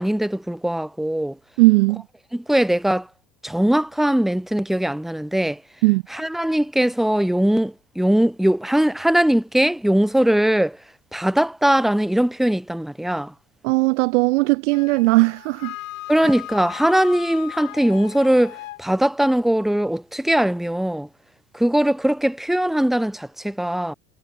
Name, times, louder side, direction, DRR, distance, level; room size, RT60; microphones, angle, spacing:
voice 1, 0.0-1.4 2.3-3.1 3.4-5.6 6.1-10.8 11.1-13.3 16.1-21.1 21.5-23.9, right 1 dB, ahead, 1.0 m, -20 dB
voice 2, 1.6-2.0 5.8-6.0 13.6-15.7 16.2-16.3, right 24 dB, 55° right, 0.5 m, -18 dB
Wind instrument woodwind instrument, 14.7-18.8, left 16 dB, 70° left, 0.8 m, -37 dB
figure-of-eight pair, 70°, 42 cm